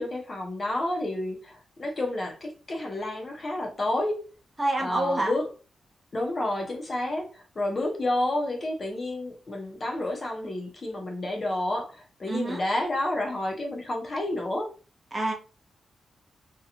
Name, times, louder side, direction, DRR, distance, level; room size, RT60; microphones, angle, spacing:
voice 1, 0.0-4.2 4.8-5.5 6.1-14.7, left 1 dB, 30° left, 0.6 m, -30 dB
voice 2, 4.6-5.3 12.3-12.6 15.1-15.3, right 2 dB, 20° right, 0.6 m, -27 dB
2.8 x 2.2 x 2.5 m
wide cardioid pair, 170°, 0 cm